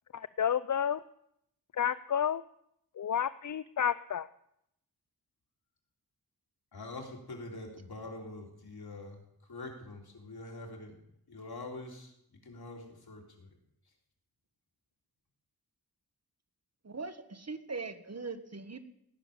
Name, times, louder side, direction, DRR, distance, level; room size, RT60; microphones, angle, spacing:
voice 1, 0.1-1.0 1.8-2.4 3.0-4.3, left 8 dB, 55° left, 16 dB, 0.5 m, -30 dB
voice 2, 6.7-11.0 11.3-13.5, left 2 dB, 80° left, 1 dB, 3.6 m, -45 dB
voice 3, 16.8-18.8, right 4 dB, 45° right, 10 dB, 1.5 m, -40 dB
17.0 x 6.9 x 10.0 m, 0.76 s
wide cardioid pair, 70°, 37 cm